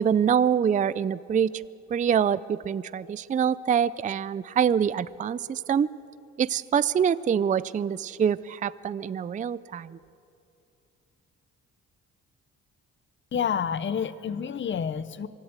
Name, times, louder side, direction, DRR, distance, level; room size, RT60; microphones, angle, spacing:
voice 1, 0.0-1.5 1.9-5.9 6.4-10.0, right 8 dB, 25° right, 17 dB, 0.4 m, -25 dB
voice 2, 13.3-15.3, left 7 dB, 40° left, 15 dB, 0.8 m, -29 dB
24.0 x 14.5 x 8.0 m, 2.7 s
cardioid pair, 90°, 30 cm